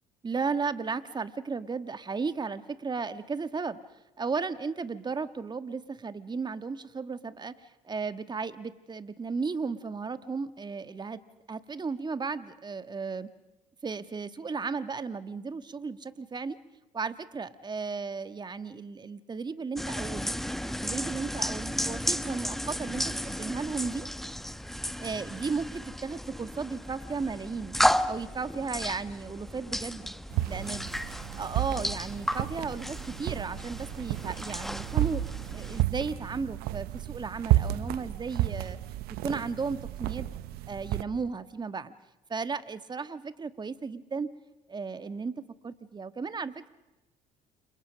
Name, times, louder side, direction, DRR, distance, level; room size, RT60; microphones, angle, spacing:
voice 1, 0.2-3.8 4.2-11.2 11.5-13.3 13.8-16.6 16.9-24.1 25.0-27.8 28.0-30.9 31.4-35.2 35.5-38.8 39.2-40.3 40.7-41.9 42.3-44.3 44.7-46.7, right 4 dB, 25° right, 12 dB, 1.5 m, -35 dB
sound 1, 19.8-35.8, equal, ahead, 1.0 m, -33 dB
sound 2, 30.3-41.0, right 15 dB, 70° right, 1.0 m, -32 dB
29.0 x 25.5 x 6.3 m, 1.0 s
supercardioid pair, 70°, 16 cm